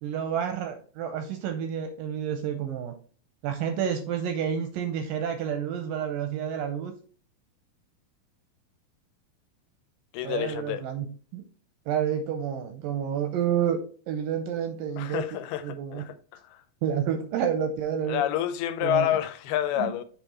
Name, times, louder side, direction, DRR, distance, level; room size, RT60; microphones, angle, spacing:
voice 1, 0.0-2.9 3.4-6.9 10.2-11.4 11.9-16.0 16.8-18.2 18.8-19.2 19.8-19.9, right 8 dB, 80° right, 2.1 m, -29 dB
voice 2, 10.1-10.8 15.0-16.6 18.1-20.0, left 11 dB, 85° left, 2.6 m, -29 dB
7.3 x 3.7 x 4.2 m
omnidirectional pair, 4.5 m